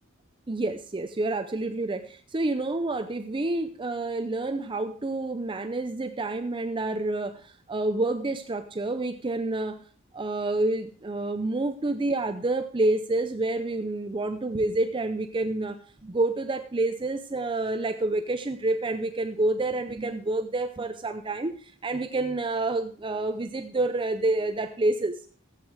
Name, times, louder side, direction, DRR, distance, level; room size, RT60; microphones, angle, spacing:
voice 1, 0.5-9.8 10.1-25.2, right 2 dB, 25° right, 8 dB, 0.5 m, -28 dB
14.5 x 8.1 x 4.7 m, 0.44 s
head